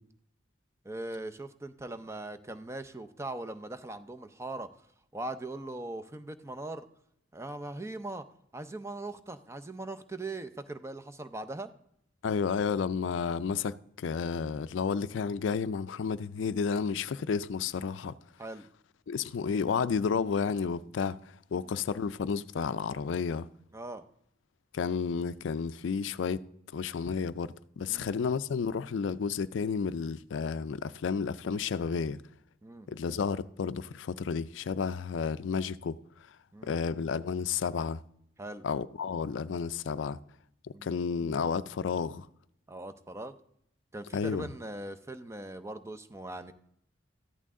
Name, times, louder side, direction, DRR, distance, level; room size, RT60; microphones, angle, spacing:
voice 1, 0.8-4.7 5.1-6.9 7.3-8.3 8.5-11.7 18.4-18.7 21.5-21.7 23.7-24.0 27.9-28.1 32.6-32.9 36.5-36.8 38.4-38.6 40.7-40.9 42.7-43.3 43.9-46.5, right 2 dB, 15° right, 0.5 m, -40 dB
voice 2, 12.2-18.1 19.1-21.2 21.5-23.5 24.7-26.4 26.7-32.2 32.9-36.0 36.6-38.0 38.6-40.2 40.6-42.3 44.1-44.5, left 5 dB, 75° left, 0.4 m, -31 dB
14.0 x 10.5 x 3.7 m
head